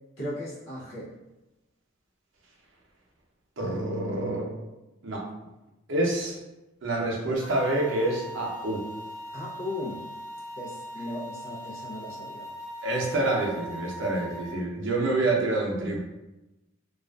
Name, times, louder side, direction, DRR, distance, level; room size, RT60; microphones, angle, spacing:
voice 1, 0.2-1.2 9.3-10.0 10.6-12.5, left 1 dB, 70° left, -7 dB, 0.6 m, -37 dB
voice 2, 3.6-4.5 5.0-5.2 5.9-6.4 6.8-8.8 12.8-16.0, right 2 dB, 65° right, -2 dB, 0.6 m, -27 dB
sound 1, 7.4-14.5, equal, 35° left, 0.8 m, -40 dB
2.4 x 2.3 x 2.3 m, 0.99 s
head